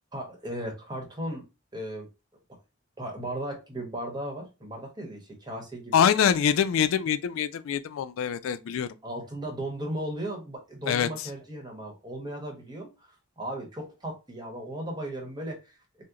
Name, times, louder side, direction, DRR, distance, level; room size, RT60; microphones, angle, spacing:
voice 1, 0.1-1.4 1.7-2.1 3.0-6.1 9.0-16.0, right 1 dB, 20° right, 1.0 m, -36 dB
voice 2, 5.9-8.9 10.8-11.3, left 8 dB, 85° left, 0.3 m, -24 dB
2.8 x 2.0 x 3.6 m
head